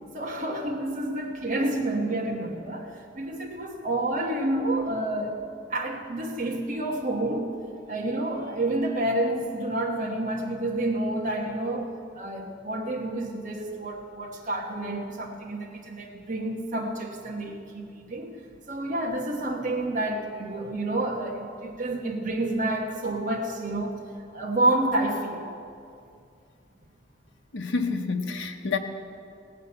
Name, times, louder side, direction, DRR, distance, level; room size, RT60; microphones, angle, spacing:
voice 1, 0.1-2.9 3.1-5.4 5.7-7.6 7.9-11.9 12.1-18.4 18.7-24.0 24.3-25.5, right 1 dB, 45° right, -1 dB, 1.3 m, -29 dB
voice 2, 27.5-28.8, left 4 dB, 80° left, 3 dB, 0.9 m, -28 dB
17.0 x 6.7 x 8.7 m, 2.5 s
head